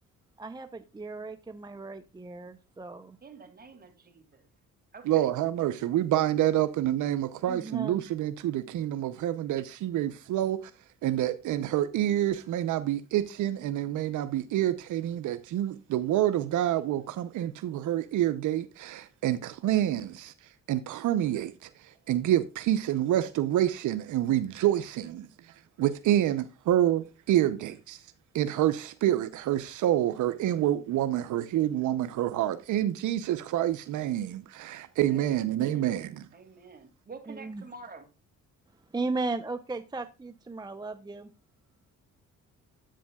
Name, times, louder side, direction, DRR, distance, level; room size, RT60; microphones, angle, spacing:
voice 1, 0.4-3.2 7.5-8.0 37.3-37.6 38.9-41.3, right 3 dB, 15° right, 0.6 m, -36 dB
voice 2, 3.2-4.5 4.9-5.3 35.1-36.0 36.3-38.1, right 4 dB, 30° right, 2.4 m, -48 dB
voice 3, 5.1-10.6 11.0-20.3 20.7-21.7 22.1-25.3 25.8-28.0 28.3-36.2, right 12 dB, 75° right, 0.7 m, -27 dB
10.0 x 8.3 x 2.3 m
cardioid pair, 90°, 30 cm